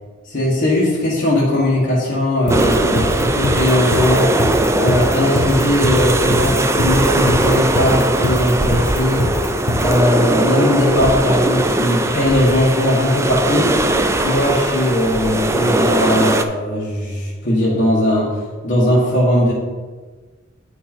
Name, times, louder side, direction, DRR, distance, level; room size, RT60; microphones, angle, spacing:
voice 1, 0.3-4.4 4.7-9.3 9.8-13.7 14.1-19.5, left 1 dB, 45° left, -7 dB, 1.7 m, -18 dB
sound 1, 2.5-10.0, left 1 dB, 60° left, 0.9 m, -22 dB
sound 2, 2.5-16.4, right 1 dB, 15° right, 0.4 m, -19 dB
9.2 x 5.2 x 4.4 m, 1.4 s
head